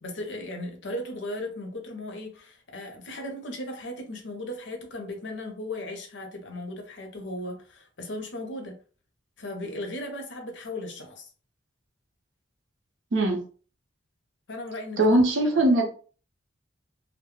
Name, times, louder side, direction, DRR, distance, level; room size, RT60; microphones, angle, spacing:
voice 1, 0.0-8.8 9.4-11.3 14.5-15.2, left 1 dB, 75° left, 4 dB, 0.7 m, -36 dB
voice 2, 13.1-13.4 15.0-15.9, right 1 dB, 90° right, 3 dB, 0.7 m, -20 dB
2.2 x 2.0 x 3.1 m, 0.40 s
head